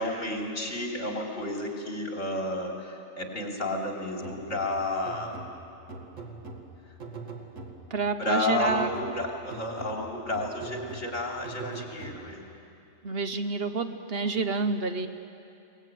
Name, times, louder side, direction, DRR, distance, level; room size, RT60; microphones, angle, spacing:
voice 1, 0.0-5.3 8.2-12.4, left 2 dB, 70° left, 0 dB, 3.6 m, -31 dB
sound 1, 4.2-8.1 8.7-12.6, right 3 dB, 75° right, 2.2 m, -43 dB
voice 2, 7.9-8.9 13.0-15.1, right 4 dB, 55° right, 8 dB, 1.1 m, -28 dB
22.0 x 19.5 x 9.2 m, 2.6 s
omnidirectional pair, 1.3 m